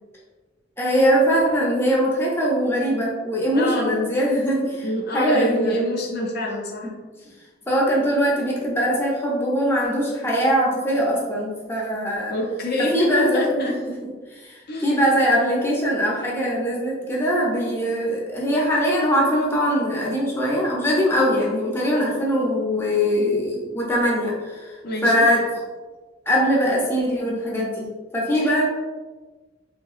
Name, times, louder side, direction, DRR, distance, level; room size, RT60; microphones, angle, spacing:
voice 1, 0.8-5.8 7.7-12.3 12.8-24.7 25.0-25.6 26.3-28.6, equal, 15° left, -4 dB, 0.6 m, -22 dB
voice 2, 3.5-4.0 4.8-6.9 12.3-13.7 14.7-15.0 24.8-25.3 28.3-28.5, left 1 dB, 55° left, 0 dB, 0.5 m, -26 dB
3.2 x 2.7 x 2.4 m, 1.3 s
head